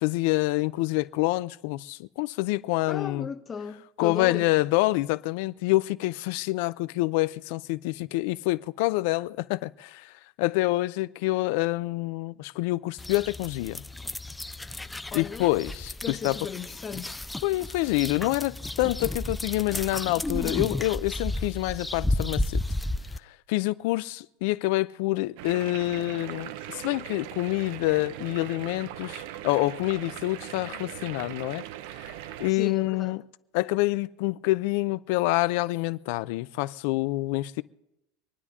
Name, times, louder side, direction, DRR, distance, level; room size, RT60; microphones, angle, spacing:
voice 1, 0.0-3.3 4.0-10.1 10.4-13.8 15.1-16.4 17.4-22.6 23.2-31.6 32.0-32.1 32.4-33.2 33.5-37.6, left 19 dB, 65° left, 0.5 m, -27 dB
voice 2, 2.9-4.5 15.1-15.5 16.0-17.2 32.5-33.2, left 6 dB, 25° left, 0.9 m, -36 dB
sound 1, 13.0-23.2, left 1 dB, 5° left, 0.4 m, -33 dB
sound 2, 25.4-32.5, right 12 dB, 70° right, 0.6 m, -40 dB
25.5 x 9.8 x 3.7 m
supercardioid pair, 135°, 0 cm